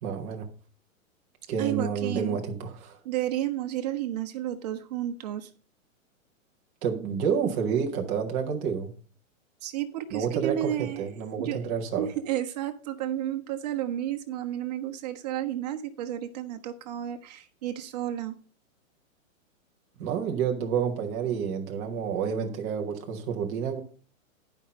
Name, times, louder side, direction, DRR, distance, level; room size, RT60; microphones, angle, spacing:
voice 1, 0.0-0.5 1.5-3.0 6.8-8.9 10.1-12.1 20.0-23.8, right 7 dB, 10° right, 0.5 m, -29 dB
voice 2, 1.6-2.4 3.0-5.5 9.6-11.1 11.4-18.3, right 12 dB, 30° right, 1.0 m, -32 dB
10.5 x 5.5 x 5.1 m
hypercardioid pair, 170°, 41 cm